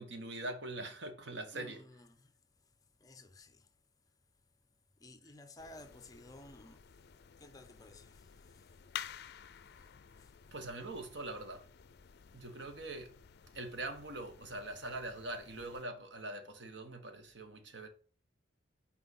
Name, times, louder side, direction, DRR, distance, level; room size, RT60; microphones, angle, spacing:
voice 1, 0.0-1.8 10.5-11.7 12.3-13.2 13.5-17.9, right 2 dB, 65° right, 1.2 m, -43 dB
voice 2, 1.5-2.3 3.0-3.7 5.0-6.8 7.4-8.8 10.2-10.3, left 1 dB, 20° left, 0.7 m, -55 dB
sound 1, 5.6-15.8, left 9 dB, 60° left, 0.5 m, -52 dB
6.0 x 4.3 x 5.8 m
head